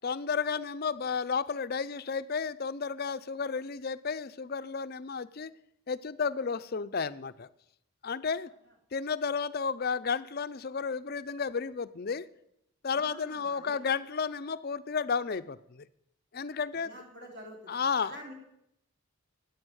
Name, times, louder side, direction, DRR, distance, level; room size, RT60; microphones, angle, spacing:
voice 1, 0.0-5.5 5.9-7.5 8.0-8.5 8.9-12.3 12.8-15.8 16.3-16.9 17.7-18.2, left 5 dB, 45° left, 13 dB, 0.5 m, -32 dB
voice 2, 12.9-13.8 16.7-17.7 18.0-18.3, equal, 55° right, 0 dB, 3.0 m, -47 dB
11.0 x 8.4 x 9.8 m, 0.79 s
head